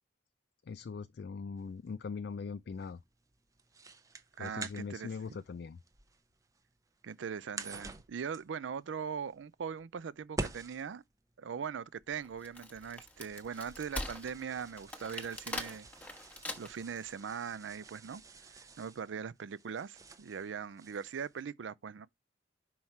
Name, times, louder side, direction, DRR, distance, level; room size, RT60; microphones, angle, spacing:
voice 1, 0.6-3.0 4.4-5.8, left 5 dB, 60° left, 0.4 m, -41 dB
sound 1, 1.6-21.4, right 3 dB, 20° right, 0.6 m, -49 dB
voice 2, 4.4-5.1 7.0-11.0 11.4-15.9 16.6-18.2 18.5-22.1, right 7 dB, 85° right, 0.4 m, -40 dB
Wood, 12.2-17.0, left 1 dB, 10° left, 1.0 m, -42 dB
5.6 x 4.6 x 4.3 m
head